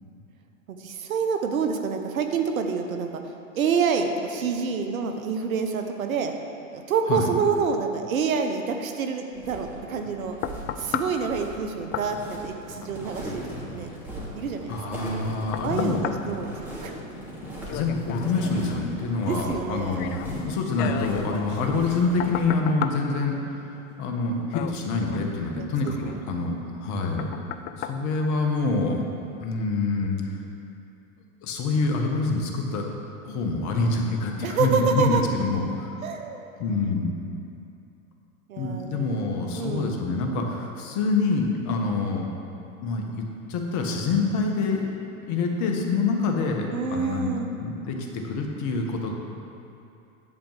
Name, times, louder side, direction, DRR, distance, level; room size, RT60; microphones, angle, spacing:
voice 1, 0.7-3.1 3.6-6.4 6.7-10.3 10.8-13.9 14.3-15.0 15.6-16.9 19.3-20.1 25.6-25.7 26.0-26.2 34.4-35.2 36.0-36.5 38.5-40.0 46.7-47.5, right 5 dB, 80° right, 5 dB, 1.0 m, -27 dB
sound 1, 9.3-22.5, right 1 dB, 5° right, 2.5 m, -39 dB
sound 2, 9.7-29.0 29.5-29.6, left 9 dB, 25° left, 0.3 m, -38 dB
voice 2, 14.7-16.0 17.4-23.7 24.0-27.3 27.8-29.0 29.4-30.4 31.4-32.9 33.2-35.9 36.6-37.1 38.6-42.3 42.8-44.8 45.3-47.3 47.6-49.1, left 3 dB, 45° left, 2 dB, 1.5 m, -26 dB
10.5 x 4.5 x 7.4 m, 2.7 s
hypercardioid pair, 105°, 41 cm